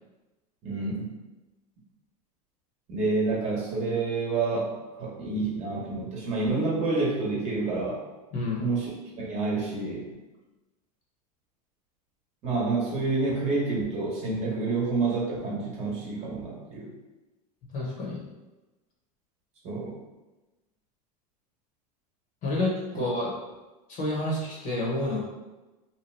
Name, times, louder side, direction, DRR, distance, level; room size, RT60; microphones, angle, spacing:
voice 1, 0.6-1.1 2.9-8.0 8.6-8.9 9.2-10.1 12.4-16.9 19.6-20.0, right 3 dB, 35° right, -4 dB, 1.0 m, -28 dB
voice 2, 8.3-8.7 17.7-18.2 22.4-23.3 23.9-25.2, left 2 dB, 40° left, -3 dB, 1.0 m, -29 dB
2.8 x 2.2 x 3.2 m, 1.1 s
supercardioid pair, 120°, 20 cm